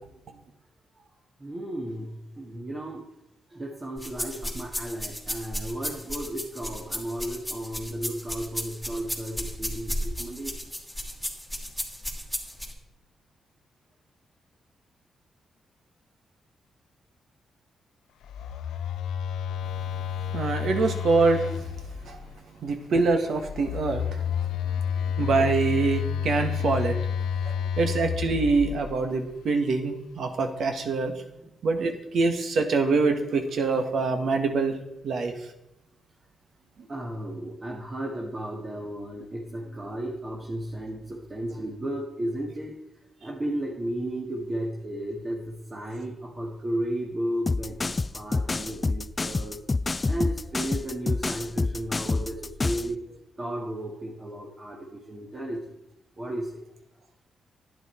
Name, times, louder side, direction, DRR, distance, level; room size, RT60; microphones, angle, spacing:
voice 1, 1.4-3.1 3.5-10.8 24.6-25.1 27.5-27.7 31.4-31.5 36.9-42.8 43.2-49.6 49.8-55.7 56.2-56.6, right 1 dB, 30° right, -1 dB, 1.7 m, -34 dB
sound 1, 4.0-12.7, equal, 5° right, 2.8 m, -34 dB
Telephone, 18.2-22.3 23.4-29.1, left 8 dB, 90° left, 0.5 m, -30 dB
voice 2, 20.3-21.7 22.0-22.2 22.6-24.2 25.2-27.0 27.4-31.1 31.6-34.8 35.0-35.3, right 4 dB, 70° right, 6 dB, 1.6 m, -25 dB
sound 2, 47.5-52.9, left 3 dB, 30° left, 0.3 m, -27 dB
11.0 x 10.0 x 4.4 m, 0.88 s
cardioid pair, 75°, 0 cm